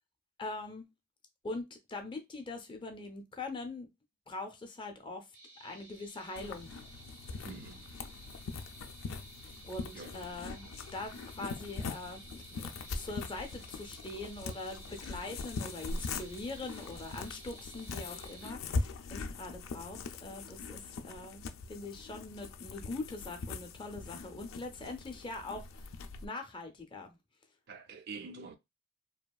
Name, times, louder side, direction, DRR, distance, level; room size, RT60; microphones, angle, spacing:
voice 1, 0.4-0.8 1.4-3.9 4.3-5.3 5.6-6.7 9.6-25.9 26.2-27.2, left 2 dB, 25° left, 0.4 m, -43 dB
sound 1, 5.3-18.5, right 2 dB, 75° right, 0.9 m, -54 dB
sound 2, 6.4-26.3, left 4 dB, 85° left, 0.4 m, -42 dB
voice 2, 7.4-7.9 9.9-10.2 27.7-28.6, right 4 dB, 50° right, 0.3 m, -46 dB
2.8 x 2.3 x 2.3 m
head